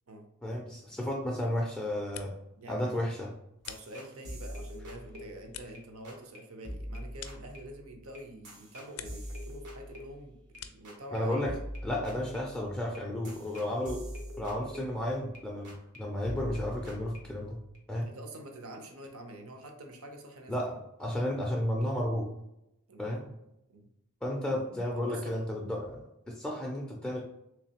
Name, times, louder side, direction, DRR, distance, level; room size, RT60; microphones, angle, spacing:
voice 1, 0.4-2.3 2.7-3.3 11.1-11.6 11.8-14.0 14.4-17.6 17.9-18.1 20.5-22.3 23.0-23.3 24.2-27.2, left 1 dB, 5° left, -1 dB, 0.4 m, -33 dB
sound 1, 1.8-2.6 2.9-4.4 4.8-8.1 8.4-9.4 9.7-11.0, left 10 dB, 80° left, 0.4 m, -50 dB
voice 2, 2.6-3.0 3.7-11.5 18.0-20.7 22.9-23.3 23.7-23.9 24.9-25.4, right 1 dB, 65° right, 4 dB, 0.6 m, -47 dB
sound 2, 3.6-5.8 6.0-6.4 6.6-10.6 10.8-11.2 11.4-15.4 15.6-16.0 16.2-17.8, equal, 90° right, 1.1 m, -44 dB
3.3 x 3.2 x 2.8 m, 0.83 s
head